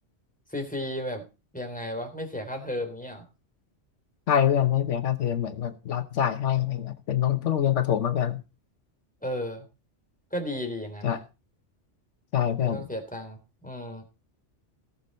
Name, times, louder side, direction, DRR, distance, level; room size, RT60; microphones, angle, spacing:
voice 1, 0.5-1.2 1.5-3.2 9.2-9.7 10.3-11.2 12.6-14.0, left 1 dB, 5° left, 4 dB, 3.2 m, -34 dB
voice 2, 4.3-8.4 11.0-11.2 12.3-12.8, left 10 dB, 85° left, 10 dB, 1.3 m, -25 dB
18.0 x 6.9 x 4.2 m, 0.30 s
omnidirectional pair, 1.2 m